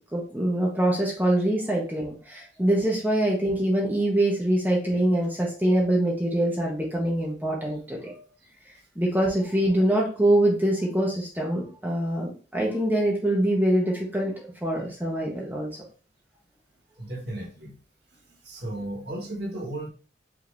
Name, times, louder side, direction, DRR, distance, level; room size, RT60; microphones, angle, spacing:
voice 1, 0.1-8.2 9.0-15.7, right 1 dB, 10° right, -2 dB, 0.8 m, -24 dB
voice 2, 17.0-17.8 18.1-19.9, right 1 dB, 55° right, -1 dB, 1.6 m, -35 dB
4.9 x 2.7 x 3.3 m, 0.38 s
head